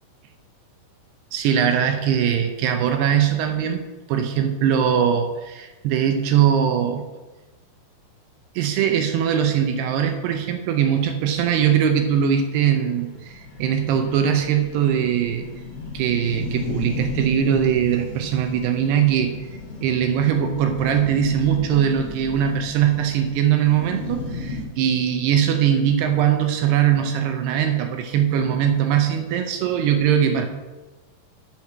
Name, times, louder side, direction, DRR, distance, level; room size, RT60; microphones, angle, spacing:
voice 1, 1.3-7.1 8.6-15.5 15.9-19.3 19.8-30.5, right 9 dB, 80° right, 6 dB, 2.7 m, -21 dB
sound 1, 12.0-12.1 12.4-12.5 12.8-12.9 13.1-24.7, left 3 dB, 55° left, 3.6 m, -34 dB
7.5 x 7.5 x 6.1 m, 1.2 s
omnidirectional pair, 4.9 m